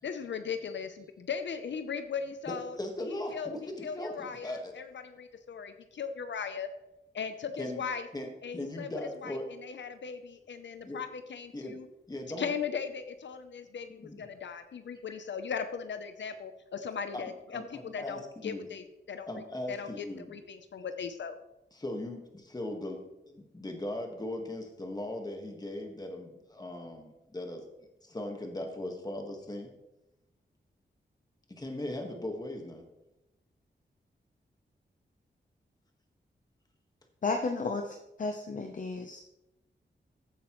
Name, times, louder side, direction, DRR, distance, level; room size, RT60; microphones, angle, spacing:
voice 1, 0.0-2.8 3.3-3.5 3.8-6.7 7.1-8.1 8.4-8.9 9.2-11.9 12.4-19.3 19.7-19.9 20.3-21.4, left 6 dB, 80° left, 9 dB, 0.6 m, -38 dB
voice 2, 2.5-4.7 7.5-7.8 8.1-9.5 10.8-11.0 11.5-11.8 12.1-12.6 14.0-14.4 14.9-15.0 17.1-17.2 17.5-18.7 19.3-20.4 21.7-27.6 28.0-29.7 31.5-32.8, left 1 dB, 20° left, 3 dB, 1.5 m, -39 dB
voice 3, 37.2-39.2, left 3 dB, 45° left, 5 dB, 0.7 m, -33 dB
14.5 x 8.4 x 3.1 m, 0.95 s
wide cardioid pair, 150°, 19 cm